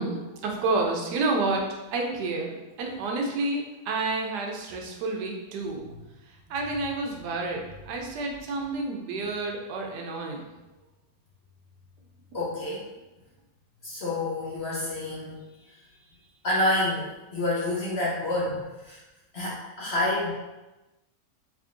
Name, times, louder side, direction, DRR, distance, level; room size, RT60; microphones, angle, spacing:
voice 1, 0.0-1.6 1.9-5.9 6.5-10.5, right 3 dB, 85° right, 1 dB, 1.2 m, -29 dB
voice 2, 12.3-12.9 13.8-15.7 16.4-19.0 19.3-20.3, left 1 dB, 50° left, -6 dB, 0.8 m, -28 dB
3.5 x 3.4 x 2.5 m, 1.1 s
omnidirectional pair, 1.8 m